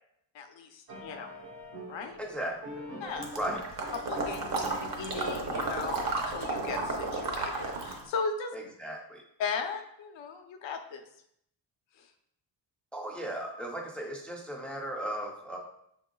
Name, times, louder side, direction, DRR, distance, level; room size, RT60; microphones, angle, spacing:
voice 1, 0.3-1.3 1.9-2.2 3.0-3.3 3.9-8.5 9.4-11.0 12.0-12.1, left 5 dB, 75° left, 5 dB, 0.7 m, -37 dB
sound 1, 0.9-6.1, equal, 80° right, 1.3 m, -45 dB
voice 2, 2.2-2.7 3.3-3.6 8.5-9.2 12.9-15.6, right 1 dB, 5° left, 0 dB, 0.4 m, -36 dB
Water / Liquid, 3.2-8.1, right 3 dB, 50° right, 0.8 m, -33 dB
6.2 x 3.6 x 2.2 m, 0.73 s
wide cardioid pair, 170°, 45 cm